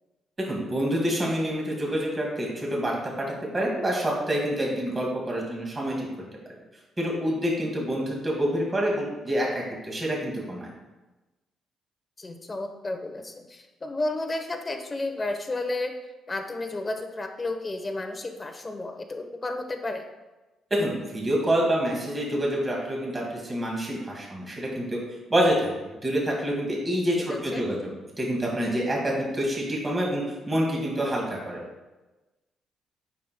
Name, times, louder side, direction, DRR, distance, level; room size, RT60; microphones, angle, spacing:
voice 1, 0.5-2.9 3.5-6.1 7.0-10.7 20.7-25.0 25.3-27.8 28.2-31.6, equal, 25° right, -2 dB, 2.0 m, -27 dB
voice 2, 12.2-15.9 16.3-20.1 27.3-27.7, left 2 dB, 25° left, 5 dB, 0.8 m, -32 dB
8.4 x 5.8 x 2.2 m, 1.1 s
cardioid pair, 90°, 0 cm